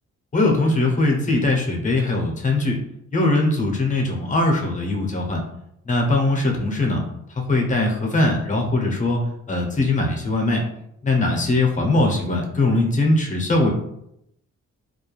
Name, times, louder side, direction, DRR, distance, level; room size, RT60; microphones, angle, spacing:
voice 1, 0.3-2.8 3.1-5.4 5.8-7.0 7.4-9.2 9.5-10.6 11.0-13.7, left 2 dB, 25° left, 0 dB, 0.5 m, -21 dB
2.3 x 2.1 x 3.0 m, 0.79 s
cardioid pair, 125°, 30 cm